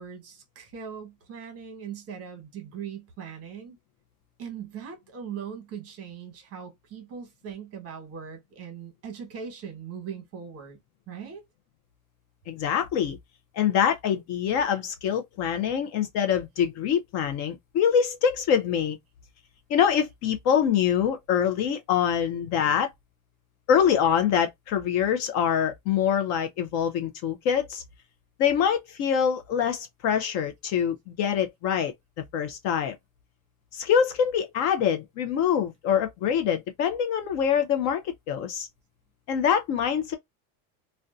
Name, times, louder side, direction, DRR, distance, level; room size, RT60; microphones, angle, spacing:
voice 1, 0.0-3.8 4.4-10.8 11.1-11.5, right 7 dB, 40° right, 1.0 m, -40 dB
voice 2, 12.5-13.2 13.5-19.0 19.7-22.9 23.7-27.8 28.4-31.9 32.3-33.0 33.7-38.0 38.3-38.7 39.3-40.2, left 8 dB, 45° left, 0.4 m, -24 dB
2.5 x 2.1 x 2.3 m
supercardioid pair, 145°, 39 cm